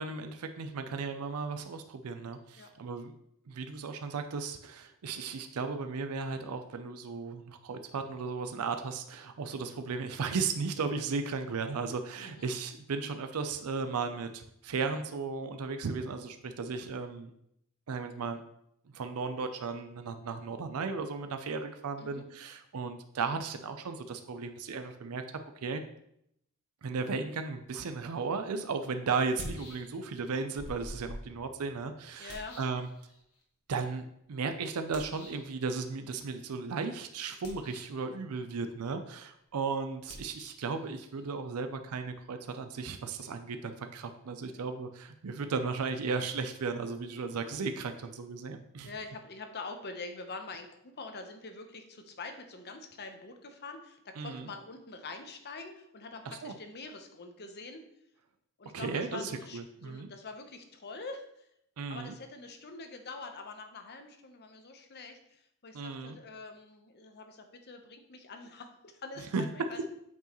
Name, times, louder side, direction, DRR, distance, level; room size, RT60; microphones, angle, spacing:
voice 1, 0.0-3.1 3.5-17.3 17.9-18.4 18.9-25.8 26.8-32.9 33.7-48.9 54.2-54.5 56.3-56.5 58.7-60.1 61.8-62.1 65.7-66.2 69.3-69.4, right 4 dB, 80° right, 8 dB, 0.5 m, -35 dB
voice 2, 12.2-12.5 22.0-22.3 32.2-32.6 44.4-44.7 48.8-57.8 58.6-61.5 61.9-69.9, left 3 dB, 45° left, 6 dB, 0.8 m, -45 dB
sound 1, 28.2-28.3 29.2-30.2 30.6-33.4 34.9-35.5 37.3-38.1 40.0-42.6, left 1 dB, 70° left, 1.3 m, -48 dB
8.2 x 4.6 x 3.0 m, 0.75 s
head